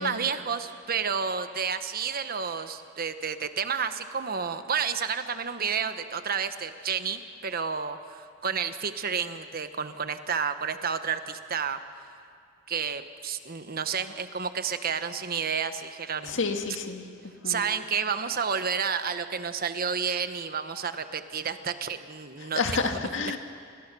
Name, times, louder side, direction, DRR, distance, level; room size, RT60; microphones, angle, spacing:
voice 1, 0.0-11.8 12.7-16.4 17.4-22.8 23.2-23.4, right 6 dB, 50° right, 9 dB, 1.2 m, -30 dB
voice 2, 16.2-17.0 17.4-17.6 22.4-23.4, left 4 dB, 70° left, 5 dB, 2.1 m, -29 dB
29.5 x 25.0 x 6.9 m, 2.3 s
head